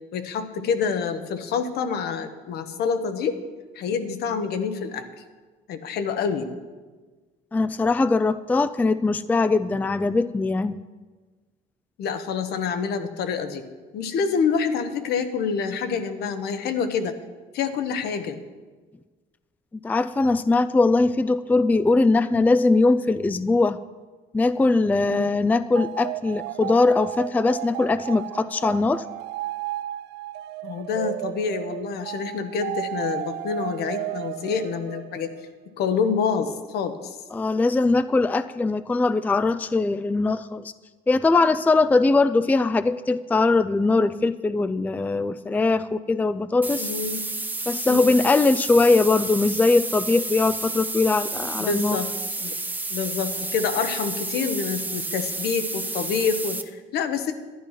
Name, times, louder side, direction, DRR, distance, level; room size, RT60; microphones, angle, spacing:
voice 1, 0.1-3.4 3.7-5.1 5.7-6.5 12.0-13.6 13.9-17.1 17.5-18.4 25.0-25.4 30.6-35.3 35.8-37.2 46.8-47.2 47.9-48.1 51.6-52.1 52.4-52.5 52.9-57.3, left 6 dB, 70° left, 8 dB, 1.3 m, -27 dB
voice 2, 7.5-10.8 19.8-23.8 24.3-29.0 37.3-40.7 41.1-46.9 47.7-52.0, left 3 dB, 10° left, 13 dB, 0.4 m, -21 dB
sound 1, 25.7-35.5, right 16 dB, 80° right, 0.4 m, -34 dB
sound 2, 46.6-56.6, right 2 dB, 10° right, 0.9 m, -31 dB
12.0 x 10.5 x 5.8 m, 1.3 s
cardioid pair, 110°, 17 cm